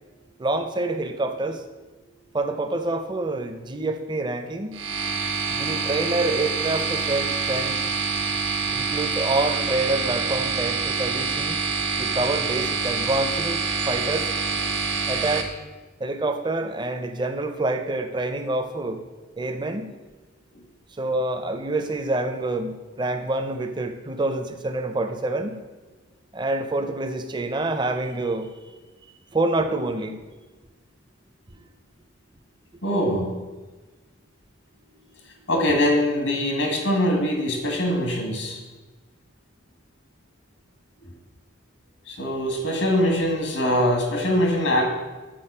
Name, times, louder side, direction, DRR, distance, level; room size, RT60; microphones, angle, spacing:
voice 1, 0.4-1.6 2.3-4.8 5.5-7.8 8.7-11.6 12.0-14.3 15.1-15.5 16.0-19.0 19.4-19.9 21.0-25.6 26.3-28.5 29.3-30.2, right 2 dB, 25° right, 7 dB, 0.5 m, -27 dB
sound 1, 4.7-15.4, right 4 dB, 85° right, 1.0 m, -26 dB
voice 2, 32.8-33.3 35.5-38.6 42.1-44.8, left 1 dB, 85° left, 1 dB, 1.6 m, -22 dB
7.7 x 4.1 x 5.4 m, 1.2 s
head